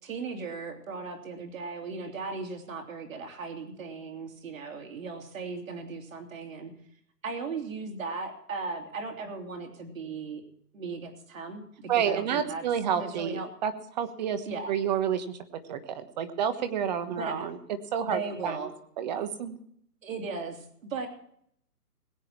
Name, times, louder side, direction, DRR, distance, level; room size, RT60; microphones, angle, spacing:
voice 1, 0.0-6.7 7.2-10.4 10.7-12.6 12.9-13.5 14.5-14.7 17.1-17.5 18.0-18.7 20.0-21.1, right 4 dB, 55° right, 3 dB, 3.2 m, -37 dB
voice 2, 11.9-15.4 15.7-17.6 17.9-18.7 19.0-19.6, right 8 dB, 25° right, 10 dB, 1.3 m, -30 dB
21.0 x 9.1 x 4.5 m, 0.68 s
hypercardioid pair, 150°, 47 cm